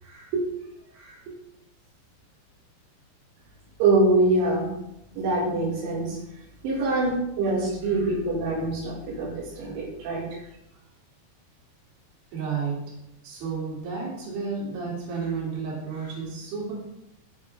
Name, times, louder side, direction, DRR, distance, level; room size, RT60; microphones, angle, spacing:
voice 1, 0.0-0.5 0.9-1.3 6.7-7.0 12.3-12.8 13.2-16.7, right 5 dB, 55° right, -4 dB, 4.7 m, -32 dB
voice 2, 3.8-4.7 5.2-6.2 6.6-10.4, right 2 dB, 80° right, -4 dB, 4.5 m, -24 dB
14.0 x 7.7 x 3.5 m, 0.85 s
omnidirectional pair, 5.6 m